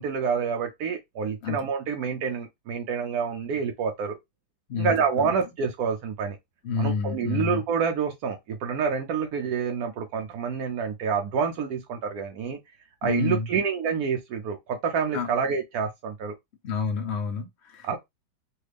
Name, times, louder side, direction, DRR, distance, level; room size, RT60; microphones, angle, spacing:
voice 1, 0.0-4.2 4.7-6.4 6.8-12.6 13.0-16.3 17.8-18.0, right 6 dB, 75° right, 0.8 m, -28 dB
voice 2, 4.7-5.3 6.6-7.6 13.0-13.5 15.1-15.3 16.6-18.0, left 4 dB, 70° left, 0.6 m, -29 dB
3.3 x 2.4 x 3.3 m
omnidirectional pair, 2.2 m